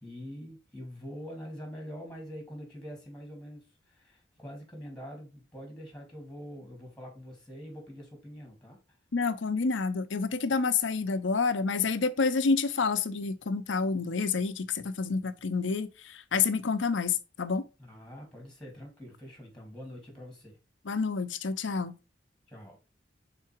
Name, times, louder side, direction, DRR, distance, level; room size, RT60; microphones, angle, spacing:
voice 1, 0.0-8.8 17.8-20.6 22.5-22.8, equal, 5° left, 2.6 m, -44 dB
voice 2, 9.1-17.6 20.9-22.0, left 4 dB, 90° left, 0.7 m, -28 dB
5.7 x 4.1 x 4.5 m
head